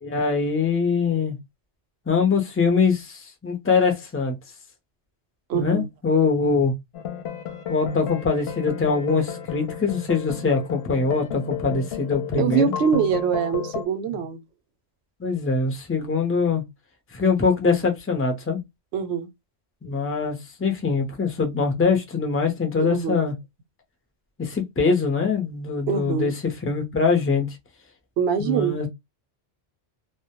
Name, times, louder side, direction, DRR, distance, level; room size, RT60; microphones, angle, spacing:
voice 1, 0.0-1.4 2.1-4.4 5.5-6.7 7.7-12.7 15.2-16.6 17.1-18.6 19.8-23.3 24.4-26.3 26.6-27.5 28.4-28.9, left 4 dB, 20° left, 0.4 m, -23 dB
voice 2, 5.5-5.9 12.4-14.4 18.9-19.3 22.8-23.2 25.9-26.3 28.2-28.8, right 7 dB, 70° right, 0.8 m, -24 dB
sound 1, 6.9-13.9, left 7 dB, 70° left, 0.8 m, -32 dB
2.1 x 2.1 x 2.8 m
omnidirectional pair, 1.2 m